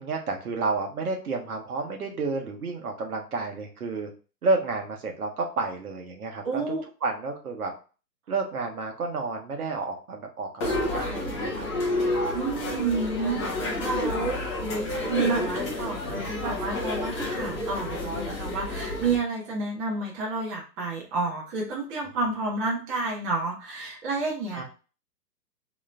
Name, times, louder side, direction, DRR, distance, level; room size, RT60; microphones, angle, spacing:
voice 1, 0.0-4.1 4.4-6.8 7.0-7.7 8.3-11.7 16.1-16.5 24.5-24.6, right 3 dB, 60° right, 2 dB, 1.2 m, -31 dB
voice 2, 6.4-6.8 12.3-24.6, right 3 dB, 20° right, -3 dB, 1.0 m, -30 dB
sound 1, 10.6-19.2, left 2 dB, 15° left, 0.6 m, -29 dB
3.7 x 3.1 x 3.3 m, 0.34 s
figure-of-eight pair, 125°, 50 cm